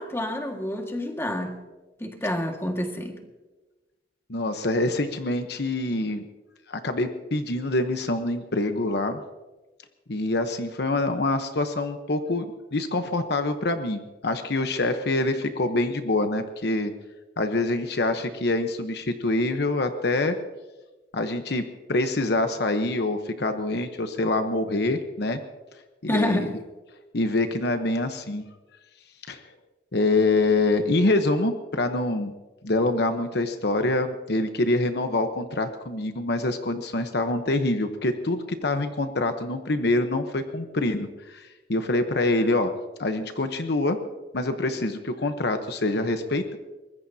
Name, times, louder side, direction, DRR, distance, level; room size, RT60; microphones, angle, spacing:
voice 1, 0.0-1.6 2.0-3.2 26.1-26.5, left 1 dB, 15° left, 1.8 m, -28 dB
voice 2, 4.3-6.3 6.7-9.2 10.1-12.5 12.7-16.9 17.4-20.4 21.1-21.6 21.9-25.4 26.0-26.5 27.1-28.4 29.3-29.4 29.9-32.3 32.6-42.7 43.0-44.0 44.3-46.6, left 2 dB, 65° left, 1.0 m, -25 dB
23.5 x 20.5 x 2.8 m
head